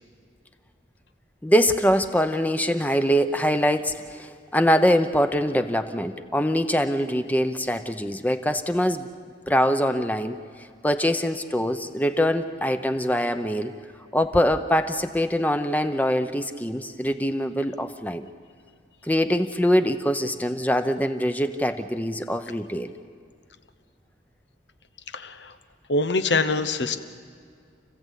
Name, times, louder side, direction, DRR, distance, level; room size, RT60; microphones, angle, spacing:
voice 1, 1.4-9.1 9.5-10.4 10.8-13.7 14.1-18.3 19.0-22.9, equal, 10° left, 9 dB, 0.7 m, -23 dB
voice 2, 25.1-25.6 25.9-27.0, left 3 dB, 85° left, 10 dB, 1.1 m, -24 dB
29.5 x 15.5 x 8.3 m, 2.2 s
head